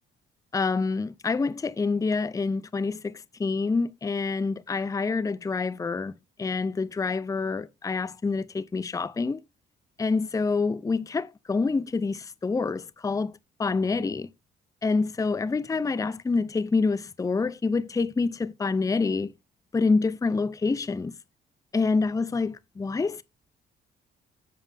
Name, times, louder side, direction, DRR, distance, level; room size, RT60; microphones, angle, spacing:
voice 1, 0.5-6.1 6.4-9.4 10.0-14.3 14.8-19.3 19.7-21.1 21.7-23.2, left 4 dB, 15° left, 0.5 m, -27 dB
7.5 x 7.3 x 3.4 m
cardioid pair, 90°, 20 cm